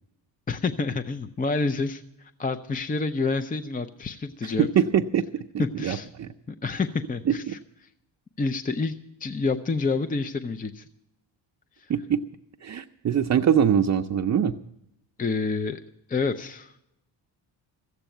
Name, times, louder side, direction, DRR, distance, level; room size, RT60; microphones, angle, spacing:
voice 1, 0.5-4.7 5.6-6.1 6.5-7.6 8.4-10.9 11.8-11.9 15.2-15.8 16.1-16.8, left 4 dB, 20° left, 10 dB, 0.6 m, -28 dB
voice 2, 4.4-6.3 7.3-7.6 11.9-12.2 12.6-14.5, right 8 dB, 40° right, 4 dB, 0.6 m, -23 dB
14.5 x 8.2 x 9.0 m, 0.84 s
cardioid pair, 100°, 43 cm